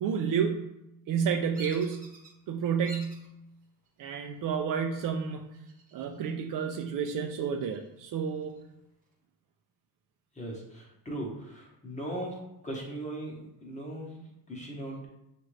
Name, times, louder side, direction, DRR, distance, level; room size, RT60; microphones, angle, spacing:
voice 1, 0.0-0.7 1.1-2.1 2.5-3.3 4.0-5.4 5.9-8.6, right 7 dB, 55° right, 4 dB, 0.4 m, -30 dB
Bird vocalization bird call bird song, 1.5-2.3 2.8-3.3 3.9-4.4 5.5-6.3 6.6-6.7 7.2-8.6, right 2 dB, 20° right, 1.0 m, -49 dB
voice 2, 11.8-12.4 12.6-13.3 13.6-14.2 14.5-15.1, right 1 dB, 20° left, -2 dB, 0.9 m, -37 dB
6.1 x 2.5 x 3.1 m, 0.86 s
cardioid pair, 160°, 40 cm